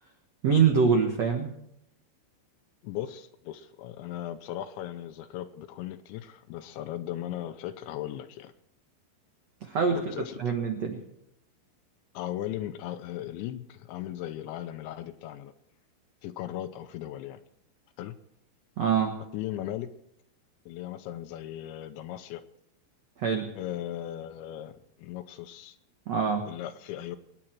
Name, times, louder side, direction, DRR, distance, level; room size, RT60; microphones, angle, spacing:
voice 1, 0.4-1.5 9.6-11.0 18.8-19.2 23.2-23.5 26.1-26.4, right 6 dB, 90° right, 3 dB, 1.4 m, -25 dB
voice 2, 2.8-8.5 9.9-10.4 12.1-15.5 16.2-17.4 18.0-18.2 19.3-19.9 20.7-22.4 23.5-25.8 26.5-27.2, left 12 dB, 80° left, 10 dB, 2.9 m, -37 dB
26.0 x 10.0 x 4.5 m, 0.79 s
omnidirectional pair, 5.6 m